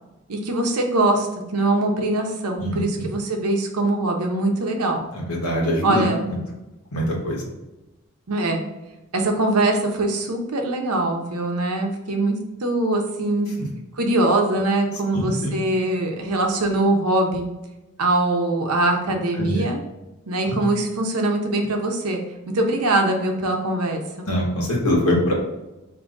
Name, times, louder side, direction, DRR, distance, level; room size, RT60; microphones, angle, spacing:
voice 1, 0.3-1.3 1.5-5.0 5.8-6.3 8.3-8.6 9.1-12.4 12.6-13.5 13.9-17.5 18.0-19.8 20.3-22.2 22.5-24.0, right 2 dB, 90° right, 2 dB, 0.8 m, -22 dB
voice 2, 2.6-3.1 5.1-6.0 6.9-7.5 15.1-15.6 19.4-19.6 20.4-20.6 24.3-25.3, equal, 80° left, -3 dB, 1.1 m, -23 dB
3.9 x 2.7 x 3.7 m, 1.0 s
head